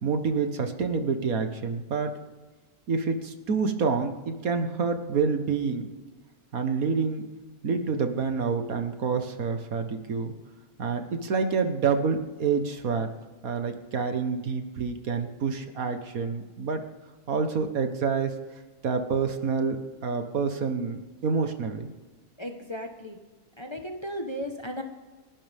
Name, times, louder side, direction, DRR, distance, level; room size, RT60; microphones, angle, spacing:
voice 1, 0.0-2.1 2.9-5.9 6.5-7.2 7.6-10.3 10.8-13.1 13.4-16.8 17.3-18.3 18.8-21.9, right 5 dB, 65° right, 7 dB, 1.7 m, -27 dB
voice 2, 22.4-23.2 23.6-24.8, equal, 20° left, 4 dB, 1.2 m, -35 dB
29.0 x 12.0 x 3.6 m, 1.3 s
omnidirectional pair, 1.6 m